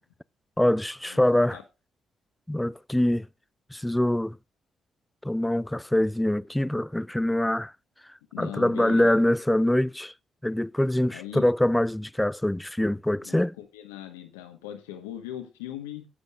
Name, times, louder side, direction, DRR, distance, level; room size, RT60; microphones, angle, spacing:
voice 1, 0.6-1.6 2.5-3.3 3.7-4.4 5.2-7.7 8.4-10.1 10.4-13.5, left 1 dB, 10° left, 0.4 m, -24 dB
voice 2, 8.3-9.2 11.1-11.4 13.2-16.1, left 12 dB, 90° left, 1.3 m, -39 dB
17.5 x 8.1 x 2.5 m
hypercardioid pair, 45°, 0 cm